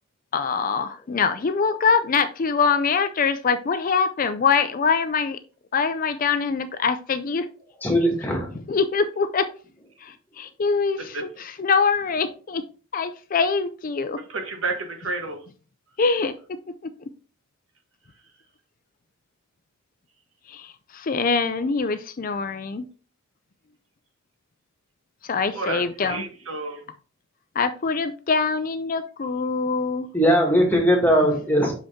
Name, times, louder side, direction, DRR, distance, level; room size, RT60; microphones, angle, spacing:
voice 1, 0.3-5.4 5.7-7.5 8.7-9.5 10.0-12.6 12.9-14.2 16.0-16.6 20.5-22.9 25.2-26.2 27.6-30.1, left 5 dB, 40° left, 11 dB, 0.4 m, -24 dB
voice 2, 7.8-8.5 30.1-31.7, equal, 10° left, 0 dB, 1.8 m, -19 dB
voice 3, 14.3-15.4 25.5-26.8, right 3 dB, 65° right, 4 dB, 1.4 m, -30 dB
5.8 x 5.2 x 3.6 m, 0.39 s
head